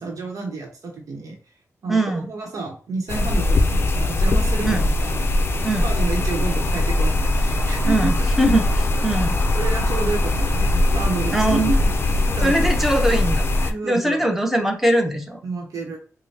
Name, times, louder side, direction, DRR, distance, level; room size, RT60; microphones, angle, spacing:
voice 1, 0.0-1.4 1.8-5.3 5.6-8.1 9.5-11.8 12.1-12.7 13.7-14.3 15.4-16.0, right 3 dB, 80° right, 1 dB, 0.9 m, -30 dB
voice 2, 1.9-2.2 4.6-4.8 5.6-5.9 7.9-9.4 11.3-11.7 12.4-15.4, right 1 dB, 5° right, 4 dB, 0.8 m, -21 dB
sound 1, 3.1-13.7, left 2 dB, 40° left, 0.5 m, -21 dB
5.2 x 2.2 x 2.8 m, 0.42 s
wide cardioid pair, 115°, 6 cm